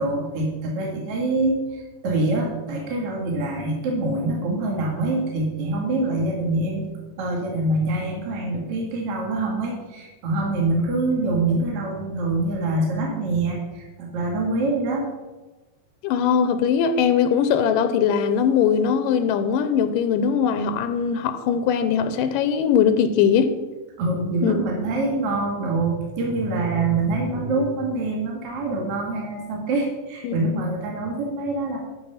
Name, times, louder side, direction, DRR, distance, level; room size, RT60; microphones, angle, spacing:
voice 1, 0.0-6.9 7.2-15.1 24.0-31.8, right 2 dB, 50° right, -1 dB, 2.6 m, -25 dB
voice 2, 16.0-23.5 24.4-24.6 30.2-30.7, left 7 dB, 85° left, 10 dB, 2.3 m, -21 dB
13.0 x 6.0 x 5.6 m, 1.1 s
omnidirectional pair, 3.8 m